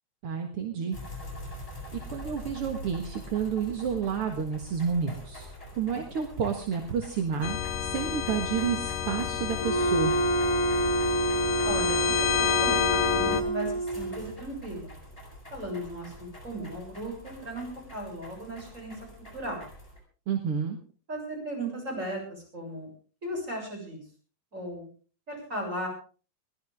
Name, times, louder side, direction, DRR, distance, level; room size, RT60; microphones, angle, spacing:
voice 1, 0.2-1.0 1.9-5.5 5.8-10.1 20.3-20.8, right 7 dB, 50° right, 5 dB, 2.1 m, -30 dB
sound 1, 0.9-20.0, left 1 dB, 10° left, 7.4 m, -45 dB
sound 2, 7.4-13.4, left 9 dB, 70° left, 2.9 m, -29 dB
Wind instrument woodwind instrument, 9.6-14.3, right 2 dB, 45° left, 1.0 m, -28 dB
voice 2, 11.6-14.9 15.5-19.0 19.3-19.6 21.1-22.9 23.2-24.0 24.5-24.9 25.3-25.9, right 1 dB, 20° right, 1 dB, 7.7 m, -36 dB
22.0 x 15.5 x 3.6 m, 0.38 s
omnidirectional pair, 4.0 m